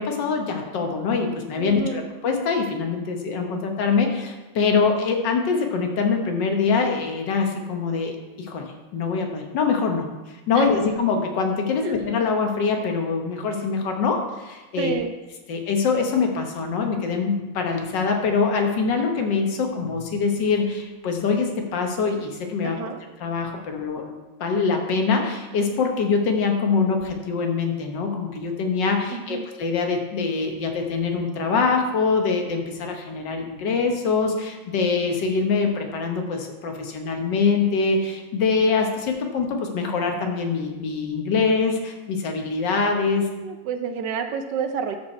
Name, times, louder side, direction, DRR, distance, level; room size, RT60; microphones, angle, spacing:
voice 1, 0.0-10.1 10.5-14.9 15.5-22.8 23.2-43.3, left 4 dB, 70° left, 3 dB, 1.7 m, -24 dB
voice 2, 1.6-2.0 10.5-10.6 11.8-12.0 14.8-15.1 22.6-23.0 29.1-29.4 43.4-45.0, right 6 dB, 70° right, 7 dB, 1.2 m, -29 dB
12.5 x 4.7 x 4.2 m, 1.1 s
omnidirectional pair, 2.1 m